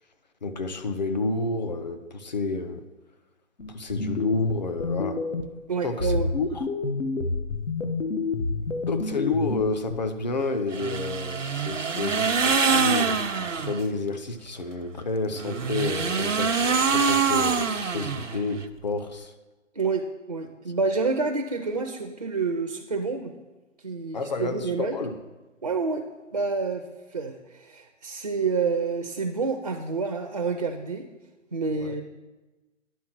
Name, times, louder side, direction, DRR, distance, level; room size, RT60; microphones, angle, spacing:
voice 1, 0.4-2.8 3.7-5.2 5.8-6.7 8.9-19.3 24.1-25.2 31.7-32.0, left 3 dB, 35° left, 7 dB, 0.5 m, -30 dB
sound 1, 3.6-5.6 6.0-10.0, left 3 dB, 75° left, 0.9 m, -29 dB
voice 2, 5.7-6.3 19.8-23.3 23.8-25.0 25.6-26.0 26.3-31.1 31.5-32.0, right 4 dB, 35° right, 5 dB, 0.4 m, -28 dB
sound 2, 10.7-13.8 15.3-18.6, right 5 dB, 75° right, 0.7 m, -25 dB
10.5 x 3.6 x 5.8 m, 1.1 s
figure-of-eight pair, 135°, 38 cm